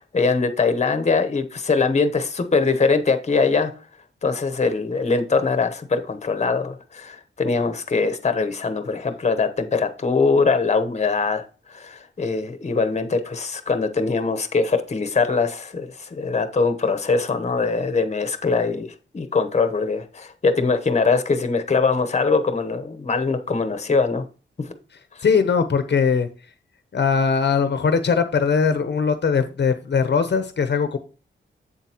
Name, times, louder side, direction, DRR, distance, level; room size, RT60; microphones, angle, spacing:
voice 1, 0.1-3.7 4.2-24.2 24.6-24.7 25.2-25.3, left 4 dB, 35° left, 0.9 m, -22 dB
voice 2, 25.2-26.3 26.9-31.0, left 5 dB, 60° left, 0.8 m, -20 dB
7.9 x 7.6 x 2.9 m
wide cardioid pair, 150°, 20 cm